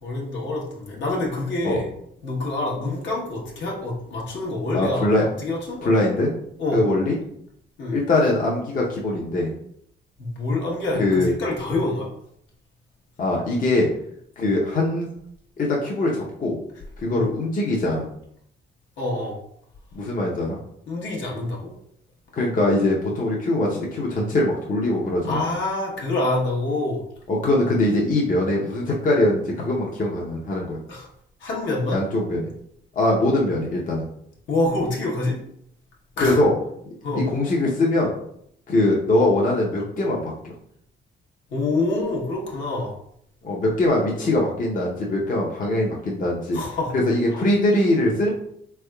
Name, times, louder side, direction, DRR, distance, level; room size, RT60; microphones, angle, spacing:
voice 1, 0.0-1.9 2.2-5.9 6.6-6.8 7.8-8.0 10.2-12.1 17.1-17.3 19.0-19.4 20.9-21.7 25.2-27.0 30.9-31.1 31.4-32.0 34.5-35.4 36.2-36.4 37.0-37.2 41.5-43.0 46.5-46.9 47.3-47.4, left 2 dB, 70° left, -2 dB, 1.1 m, -26 dB
voice 2, 4.7-5.2 5.8-6.3 6.7-7.2 7.9-9.5 11.0-11.4 13.2-13.9 14.4-15.1 15.6-16.6 17.0-18.1 19.9-20.6 22.3-25.4 27.3-30.8 31.9-32.5 33.0-34.0 36.2-36.5 37.3-38.1 38.7-40.2 43.4-46.6 46.9-48.3, left 1 dB, 45° left, -3 dB, 0.7 m, -22 dB
3.5 x 3.4 x 2.2 m, 0.70 s
cardioid pair, 90°, 20 cm